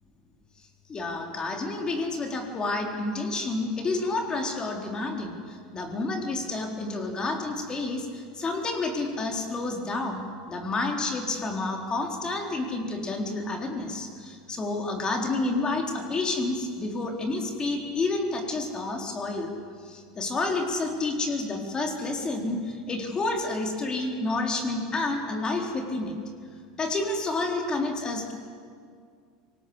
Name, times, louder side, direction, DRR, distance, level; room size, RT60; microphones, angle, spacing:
voice 1, 0.9-19.5 19.8-26.2 26.8-28.3, left 2 dB, 25° left, 2 dB, 4.1 m, -29 dB
26.0 x 19.0 x 8.2 m, 2.2 s
supercardioid pair, 115°, 4 cm